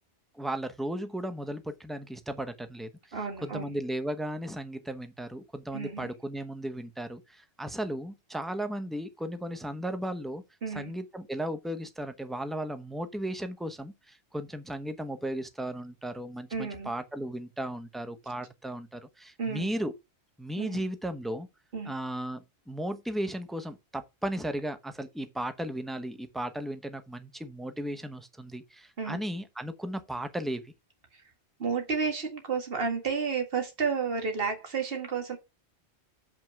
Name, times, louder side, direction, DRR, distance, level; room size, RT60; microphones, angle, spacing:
voice 1, 0.3-2.9 3.4-10.4 10.7-19.9 20.4-21.5 21.8-30.7, right 1 dB, ahead, 0.9 m, -35 dB
voice 2, 3.1-3.8 5.7-6.1 10.6-10.9 16.5-16.9 19.4-19.7 20.6-20.9 21.7-21.9 29.0-29.2 31.1-31.2 31.6-35.4, right 5 dB, 60° right, 2.0 m, -31 dB
7.5 x 5.5 x 4.6 m
omnidirectional pair, 1.1 m